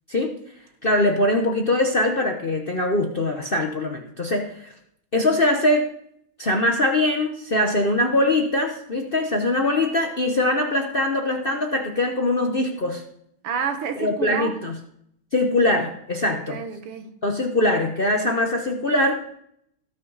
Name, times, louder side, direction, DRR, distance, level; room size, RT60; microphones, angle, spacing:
voice 1, 0.8-4.7 5.1-5.9 6.4-13.0 14.0-14.7 15.3-16.6 17.2-19.2, left 1 dB, 50° left, 2 dB, 0.6 m, -22 dB
voice 2, 13.4-14.6 16.4-17.2, right 6 dB, 85° right, 7 dB, 2.2 m, -29 dB
17.5 x 6.3 x 4.0 m, 0.70 s
omnidirectional pair, 2.4 m